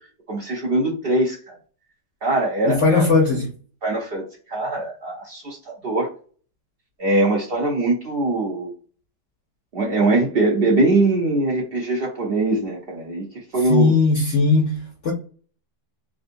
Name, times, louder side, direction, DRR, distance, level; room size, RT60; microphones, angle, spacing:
voice 1, 0.3-1.5 2.2-3.1 3.8-4.2 4.5-6.1 7.0-8.7 9.7-13.2 13.5-13.9, right 2 dB, 75° right, 0.5 m, -22 dB
voice 2, 2.6-3.5 13.6-15.1, left 3 dB, 65° left, 0.7 m, -18 dB
3.5 x 2.5 x 2.5 m
omnidirectional pair, 1.9 m